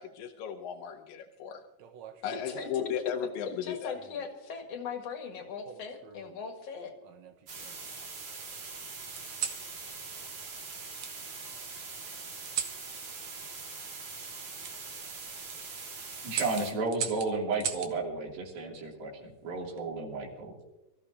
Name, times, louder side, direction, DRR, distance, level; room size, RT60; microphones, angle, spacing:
voice 1, 0.0-1.6 2.2-4.0, left 8 dB, 80° left, 1 dB, 2.5 m, -35 dB
sound 1, 1.8-2.9 3.9-4.4 5.6-6.4 7.0-7.9 9.2-9.7 11.0-11.1 12.4-12.8 14.6-14.8 15.3-15.6 16.3-17.9 19.4-19.8, right 7 dB, 65° right, 2.0 m, -39 dB
voice 2, 3.5-6.9, left 6 dB, 50° left, 4 dB, 2.5 m, -39 dB
sound 2, 7.5-16.7, right 4 dB, 50° right, 3.4 m, -42 dB
voice 3, 16.2-20.5, right 3 dB, 90° right, -1 dB, 4.7 m, -33 dB
25.5 x 14.5 x 2.8 m, 0.97 s
omnidirectional pair, 4.0 m